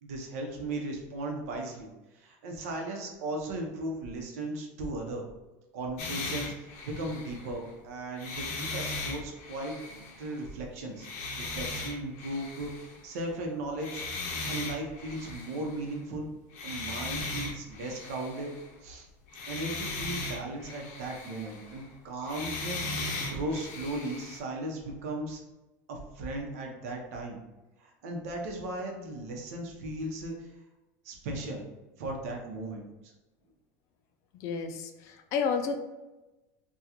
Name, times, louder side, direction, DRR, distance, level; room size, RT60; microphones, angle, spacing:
voice 1, 0.0-5.2 5.7-9.8 10.2-11.1 11.4-14.0 14.5-16.3 16.6-18.5 18.8-19.1 19.5-25.4 25.9-27.4 27.8-30.5 31.0-31.7 32.0-33.1, right 2 dB, 85° right, 1 dB, 0.8 m, -37 dB
sound 1, 6.0-7.7 8.1-10.5 11.0-13.3 13.7-15.9 16.5-18.9 19.3-21.9 22.2-24.4, left 3 dB, 70° left, 0.7 m, -38 dB
voice 2, 34.4-35.8, left 5 dB, 40° left, 6 dB, 0.4 m, -31 dB
3.6 x 2.3 x 2.9 m, 1.1 s
cardioid pair, 170°, 8 cm